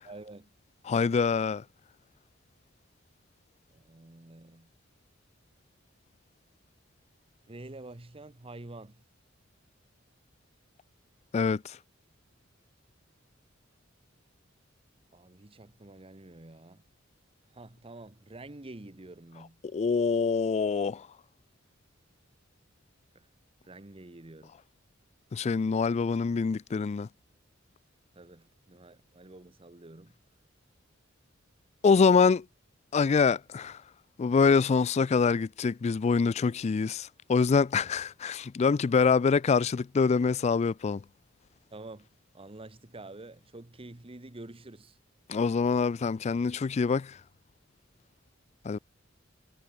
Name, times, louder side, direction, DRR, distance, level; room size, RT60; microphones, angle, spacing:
voice 1, 0.0-0.6 3.7-4.7 7.5-9.0 15.1-16.8 17.5-19.6 23.1-23.3 23.6-24.6 28.1-30.2 41.7-45.0, right 2 dB, 30° right, 1.1 m, -48 dB
voice 2, 0.9-1.6 11.3-11.8 19.7-21.1 25.3-27.1 31.8-32.4 32.9-33.8 34.2-41.0 45.3-47.2 48.6-48.8, left 5 dB, 35° left, 0.3 m, -25 dB
head